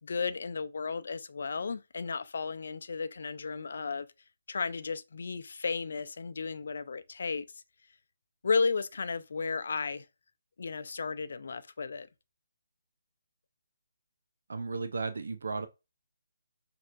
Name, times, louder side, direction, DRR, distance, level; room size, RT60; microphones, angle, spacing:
voice 1, 0.0-4.1 4.5-7.6 8.4-10.0 10.6-12.1, left 4 dB, 60° left, 0.5 m, -34 dB
voice 2, 14.5-15.7, right 4 dB, 65° right, 0.5 m, -34 dB
6.3 x 2.9 x 2.5 m
figure-of-eight pair, 145°, 0 cm